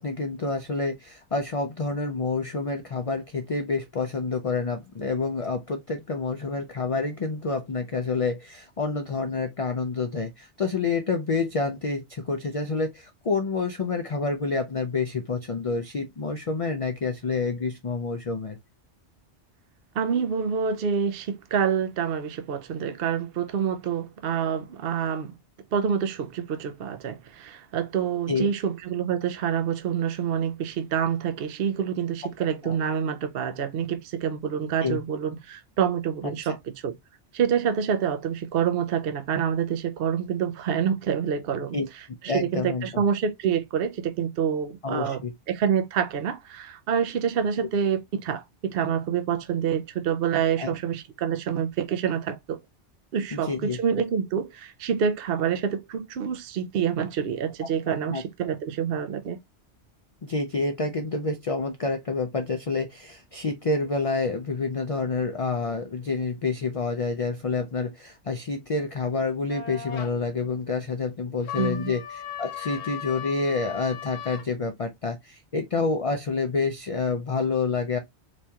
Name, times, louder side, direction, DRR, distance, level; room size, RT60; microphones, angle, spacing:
voice 1, 0.0-18.6 28.3-28.5 32.6-32.8 34.8-35.0 36.4-36.5 41.7-41.9 42.3-43.0 44.8-45.3 50.6-50.8 53.3-53.8 58.1-58.2 60.2-78.0, left 4 dB, 40° left, 0.5 m, -28 dB
voice 2, 20.0-25.4 25.7-37.0 37.3-45.2 45.5-52.6 53.1-59.4 71.5-71.9, right 7 dB, 60° right, 0.7 m, -27 dB
sound 1, 69.5-70.1 71.4-74.5, left 9 dB, 75° left, 1.0 m, -37 dB
4.0 x 2.9 x 2.3 m
omnidirectional pair, 1.2 m